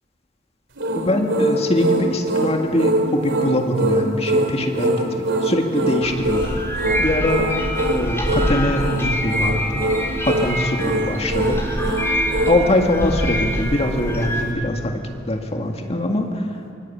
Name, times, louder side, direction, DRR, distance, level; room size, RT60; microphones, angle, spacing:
sound 1, 0.8-12.6, right 1 dB, 65° right, 3.4 m, -23 dB
voice 1, 1.0-6.4 7.0-7.5 7.9-9.6 10.3-11.6 11.9-12.1 12.5-14.9 15.3-16.5, left 1 dB, 30° left, 3 dB, 2.0 m, -22 dB
sound 2, 6.0-14.4, equal, 15° left, 3.7 m, -25 dB
25.5 x 24.5 x 8.7 m, 2.5 s
head